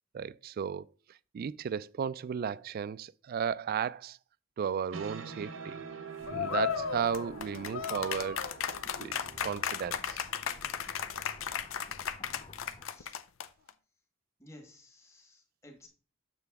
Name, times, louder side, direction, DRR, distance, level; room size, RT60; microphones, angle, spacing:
voice 1, 0.1-0.9 1.3-4.2 4.6-5.8 6.3-8.4 9.0-9.1 9.4-10.2, right 7 dB, 50° right, 0.3 m, -34 dB
sound 1, 4.6-11.8, right 5 dB, 85° right, 1.0 m, -47 dB
sound 2, 6.2-12.9, left 2 dB, 30° left, 0.7 m, -53 dB
sound 3, 6.3-13.7, left 7 dB, 85° left, 0.5 m, -35 dB
voice 2, 14.4-15.9, left 1 dB, 15° left, 1.5 m, -55 dB
6.8 x 6.8 x 3.5 m
head